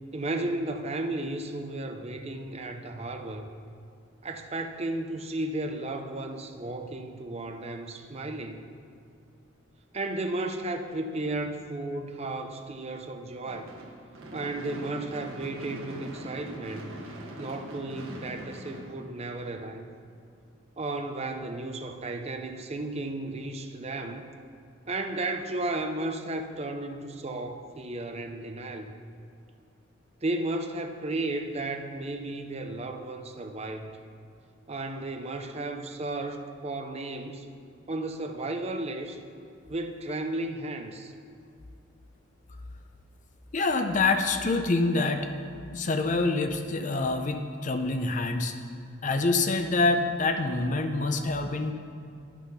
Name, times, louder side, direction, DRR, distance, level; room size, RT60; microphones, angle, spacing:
voice 1, 0.1-3.5 4.2-8.7 9.9-13.7 14.3-17.0 17.4-19.9 20.8-24.2 24.9-28.9 30.2-33.9 34.7-37.5 37.9-39.2 39.7-41.1, right 2 dB, 30° right, 5 dB, 0.6 m, -34 dB
Gunshot gunfire / Fireworks, 13.5-19.7, right 1 dB, 90° right, 1.4 m, -42 dB
voice 2, 43.5-45.3 45.7-48.5 49.0-51.7, left 3 dB, 40° left, 7 dB, 0.5 m, -26 dB
11.0 x 6.0 x 5.7 m, 2.5 s
head